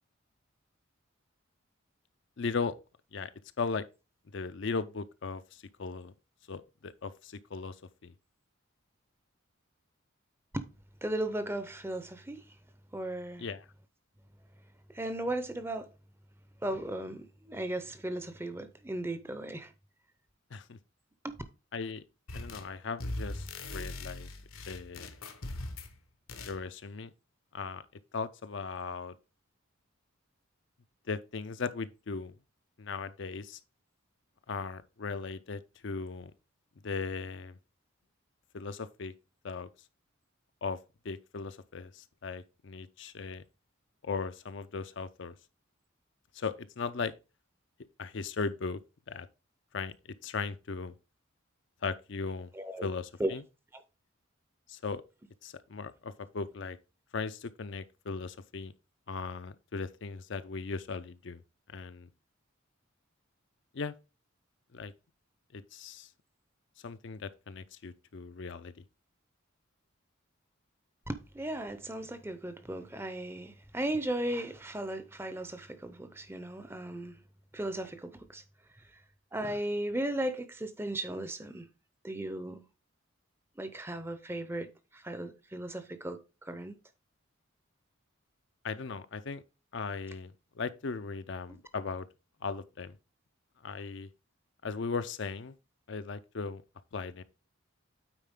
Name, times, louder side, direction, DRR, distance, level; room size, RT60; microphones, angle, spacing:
voice 1, 2.4-2.7 3.1-3.3 3.6-3.8 4.3-6.1 6.5-7.8 8.0-8.1 13.4-13.6 20.5-20.8 21.7-22.0 22.3-24.3 24.7-25.1 26.4-27.1 27.5-27.8 28.1-29.2 31.1-32.4 32.8-33.6 34.5-36.3 36.8-37.6 38.5-39.1 39.4-39.7 40.6-40.8 41.0-43.4 44.0-45.4 46.3-47.1 48.0-48.8 49.1-49.3 49.7-49.9 50.2-51.0 51.8-52.5 52.8-53.4 54.7-55.0 55.4-56.8 57.1-58.7 59.1-61.4 61.7-62.1 63.7-63.9 64.7-64.9 65.5-66.1 66.8-68.8 88.6-89.4 89.7-92.1 92.4-93.0 93.6-94.1 94.6-95.5 95.9-96.6 96.9-97.2, left 4 dB, 55° left, 0.5 m, -37 dB
voice 2, 11.0-12.6 12.9-13.5 14.9-15.9 16.6-19.7 21.2-21.4 52.5-52.9 53.2-53.3 53.7-53.8 71.1-77.2 77.5-78.4 78.9-79.0 79.3-81.7 82.0-82.6 83.6-86.8, right 1 dB, 10° right, 0.6 m, -36 dB
sound 1, 22.3-22.7 23.0-25.9 26.3-26.6, left 2 dB, 80° left, 1.1 m, -40 dB
9.0 x 4.2 x 3.6 m
head